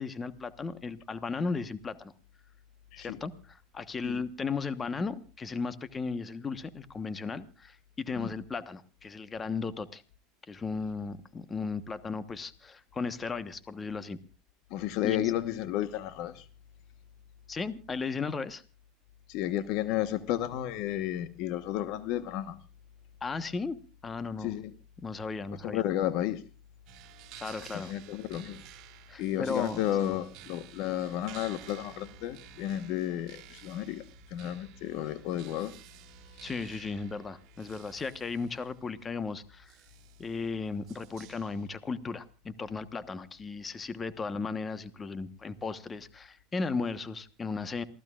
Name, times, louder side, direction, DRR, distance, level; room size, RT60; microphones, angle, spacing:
voice 1, 0.0-2.1 3.0-10.0 10.5-14.2 15.0-15.3 17.5-18.6 23.2-23.8 24.0-24.5 25.0-25.8 27.4-27.9 29.1-30.2 36.4-39.8 40.2-47.8, left 4 dB, 20° left, 1.2 m, -35 dB
voice 2, 14.7-16.5 19.3-22.6 24.4-24.7 25.6-26.4 27.7-28.6 29.2-35.7, left 12 dB, 60° left, 1.2 m, -32 dB
sound 1, 26.9-41.7, right 14 dB, 55° right, 2.3 m, -53 dB
28.0 x 15.0 x 2.5 m
supercardioid pair, 115°, 0 cm